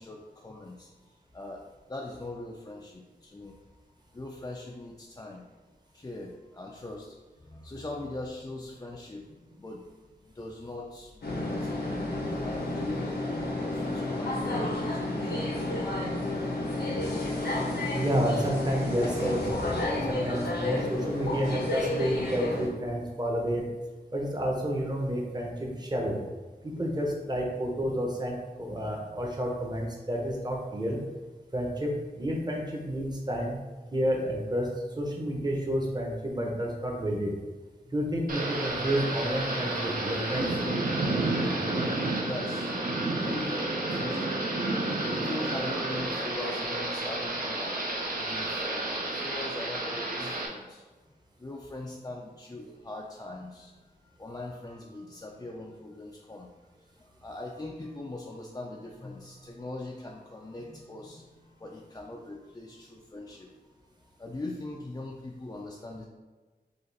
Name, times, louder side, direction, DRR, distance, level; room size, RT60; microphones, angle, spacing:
voice 1, 0.0-1.6 1.9-3.6 4.1-5.5 5.9-9.9 10.2-11.7 12.4-16.0 37.8-38.0 41.4-42.8 43.1-44.5 44.9-50.8 51.4-63.5 64.2-66.1, left 2 dB, 20° left, -1 dB, 0.4 m, -41 dB
sound 1, 11.2-22.7, left 2 dB, 90° left, 1.0 m, -31 dB
voice 2, 17.9-23.6 24.1-26.2 26.6-31.0 31.5-33.6 33.9-34.7 35.0-37.3 37.9-40.5, equal, 25° right, -1 dB, 0.9 m, -30 dB
Thunder / Rain, 38.3-50.5, right 2 dB, 60° right, 0.8 m, -30 dB
5.1 x 2.5 x 4.0 m, 1.3 s
wide cardioid pair, 110°, 16 cm